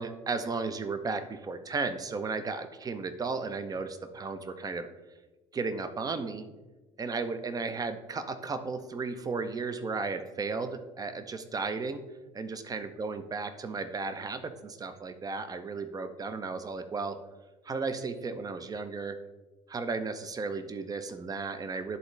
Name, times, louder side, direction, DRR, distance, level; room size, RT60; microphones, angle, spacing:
voice 1, 0.0-4.9 5.5-6.5 7.0-12.0 12.3-17.2 17.6-19.2 19.7-22.0, right 4 dB, 20° right, 9 dB, 0.7 m, -34 dB
11.0 x 3.9 x 3.3 m, 1.2 s
figure-of-eight pair, 60°, 17 cm